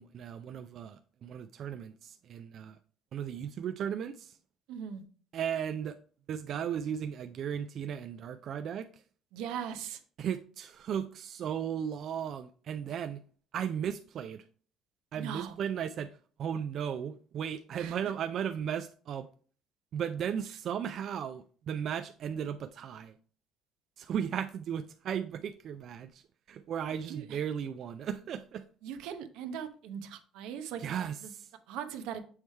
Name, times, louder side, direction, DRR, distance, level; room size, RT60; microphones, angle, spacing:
voice 1, 0.0-2.8 3.1-4.4 5.3-6.0 6.3-9.0 10.2-13.2 13.5-14.4 15.1-16.1 16.4-19.3 19.9-23.1 24.0-28.6 30.8-31.5, right 8 dB, 50° right, 0.3 m, -36 dB
voice 2, 4.7-5.0 9.3-10.0 15.1-15.6 17.8-18.0 27.1-27.4 28.8-30.9 31.2-31.3 31.7-32.2, right 8 dB, 80° right, 0.8 m, -39 dB
7.1 x 3.2 x 4.3 m
cardioid pair, 135°, 0 cm